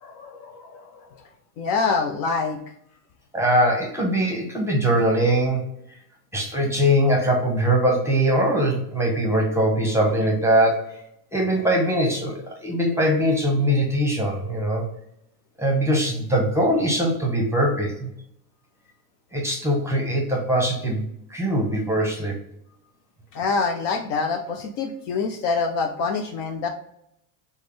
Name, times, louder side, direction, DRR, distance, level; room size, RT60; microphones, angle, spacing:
voice 1, 0.0-1.2 1.6-2.6 23.3-26.7, left 4 dB, 50° left, 4 dB, 0.5 m, -26 dB
voice 2, 3.3-5.6 6.3-10.9 11.3-14.8 15.6-18.1 19.3-21.0 21.3-22.4, right 1 dB, 5° right, 0 dB, 0.8 m, -21 dB
3.5 x 2.1 x 3.2 m, 0.74 s
supercardioid pair, 100°, 45 cm